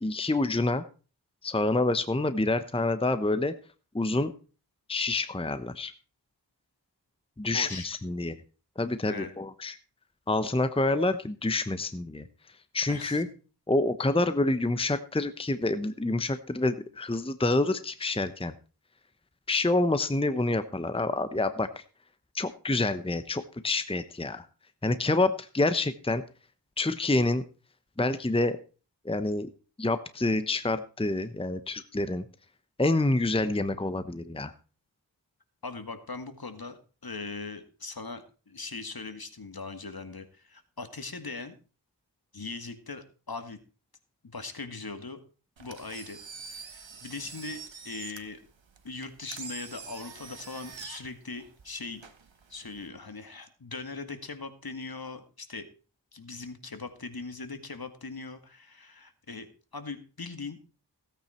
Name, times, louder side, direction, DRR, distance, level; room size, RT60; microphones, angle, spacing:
voice 1, 0.0-0.8 1.4-3.5 3.9-4.3 4.9-5.9 7.4-8.4 8.8-9.7 10.3-12.3 12.7-13.3 13.7-18.5 19.5-21.7 22.3-24.4 24.8-26.2 26.8-27.4 28.0-28.6 29.0-29.5 29.8-32.2 32.8-34.5, left 2 dB, 10° left, 11 dB, 0.9 m, -27 dB
voice 2, 7.5-7.9 9.1-9.3 12.9-13.2 35.6-41.6 42.3-43.6 44.2-45.2 45.6-46.2 46.5-48.4 48.8-52.0 52.5-55.7 56.1-60.6, left 3 dB, 55° left, 8 dB, 2.1 m, -40 dB
Engine, 45.6-52.9, right 5 dB, 80° right, 1.7 m, -46 dB
16.5 x 9.0 x 4.4 m, 0.36 s
wide cardioid pair, 50°, 44 cm